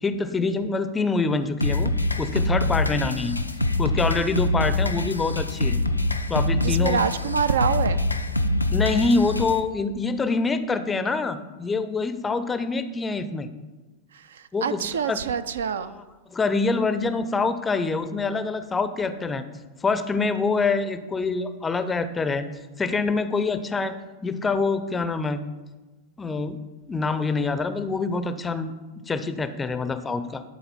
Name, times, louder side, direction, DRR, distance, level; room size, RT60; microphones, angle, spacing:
voice 1, 0.0-3.4 3.8-5.8 6.3-7.0 8.7-13.5 14.5-15.3 15.9-16.0 16.3-19.4 19.8-22.5 22.8-25.4 26.2-26.6 26.8-28.7 29.1-30.4, left 4 dB, 15° left, 11 dB, 0.4 m, -25 dB
sound 1, 1.6-9.6, left 2 dB, 85° left, 0.4 m, -24 dB
voice 2, 6.6-8.0 14.1-15.9, right 7 dB, 65° right, 12 dB, 0.3 m, -26 dB
11.5 x 4.0 x 4.2 m, 1.2 s
figure-of-eight pair, 90°, 0 cm